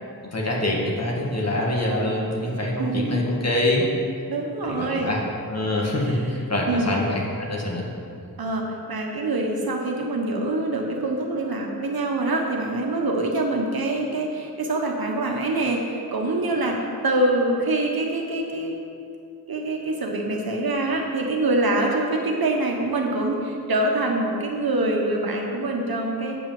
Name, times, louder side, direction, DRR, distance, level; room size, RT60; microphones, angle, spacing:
voice 1, 0.2-3.9 4.6-5.2 5.5-7.2 7.5-7.9, left 1 dB, 40° left, -2 dB, 1.9 m, -25 dB
voice 2, 2.4-3.2 4.3-5.1 5.9-6.2 6.7-7.0 8.4-18.8 19.5-26.4, right 2 dB, 70° right, 0 dB, 1.4 m, -25 dB
8.3 x 5.4 x 7.2 m, 2.5 s
wide cardioid pair, 80°, 38 cm